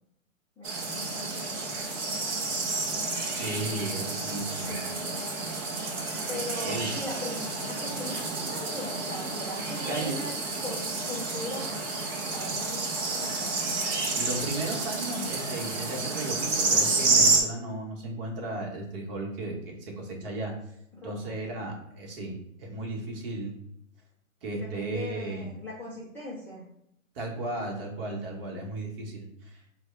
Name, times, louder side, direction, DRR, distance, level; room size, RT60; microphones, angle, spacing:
voice 1, 0.6-2.3 3.1-3.5 4.7-5.3 6.3-10.3 10.6-12.0 12.3-13.5 21.0-21.4 24.6-26.7, left 1 dB, 5° left, -11 dB, 0.5 m, -40 dB
sound 1, 0.6-17.4, right 3 dB, 25° right, 0.7 m, -30 dB
voice 2, 3.3-4.8 6.6-6.9 9.8-10.1 14.2-20.5 21.0-23.5 24.4-25.5 27.1-29.6, right 2 dB, 40° right, -1 dB, 1.3 m, -35 dB
4.7 x 2.3 x 3.6 m, 0.78 s
hypercardioid pair, 130°, 42 cm